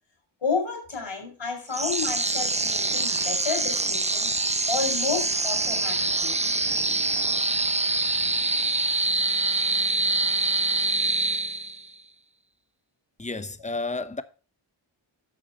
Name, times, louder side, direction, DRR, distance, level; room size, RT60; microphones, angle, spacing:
voice 1, 0.4-4.3 4.7-6.4, left 5 dB, 70° left, 4.5 m, -31 dB
sound 1, 1.7-11.9, right 2 dB, 15° right, 0.7 m, -25 dB
voice 2, 13.2-14.2, left 3 dB, 15° left, 1.0 m, -31 dB
9.0 x 6.1 x 5.3 m
cardioid pair, 45°, 49 cm